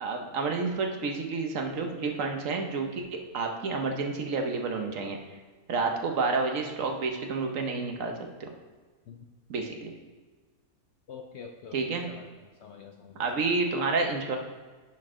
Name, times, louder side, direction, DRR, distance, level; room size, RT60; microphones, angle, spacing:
voice 1, 0.0-5.2 5.7-8.1 8.4-8.5 9.5-9.9 11.7-12.1 13.2-14.4, right 4 dB, 65° right, 3 dB, 1.2 m, -29 dB
voice 2, 11.1-12.3 12.6-13.3, left 6 dB, 65° left, 4 dB, 0.7 m, -46 dB
10.5 x 4.5 x 3.6 m, 1.4 s
omnidirectional pair, 1.6 m